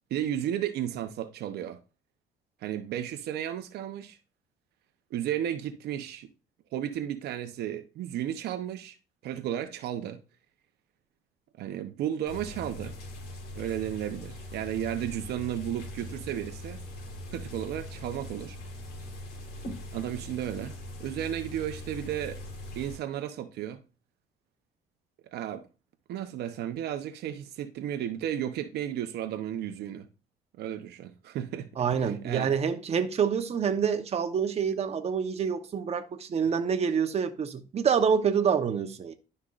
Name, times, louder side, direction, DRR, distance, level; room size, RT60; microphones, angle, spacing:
voice 1, 0.1-1.8 2.6-4.2 5.1-6.3 6.7-9.0 9.2-10.2 11.6-12.9 13.5-16.8 17.3-18.6 19.9-20.7 21.0-22.4 22.8-23.8 25.3-25.7 26.1-30.1 30.6-31.7 32.0-32.5, right 11 dB, 75° right, 0.9 m, -33 dB
sound 1, 12.3-23.0, left 1 dB, 70° left, 3.8 m, -41 dB
voice 2, 31.8-39.1, right 7 dB, 40° right, 1.0 m, -27 dB
12.0 x 5.4 x 2.5 m
cardioid pair, 110°, 17 cm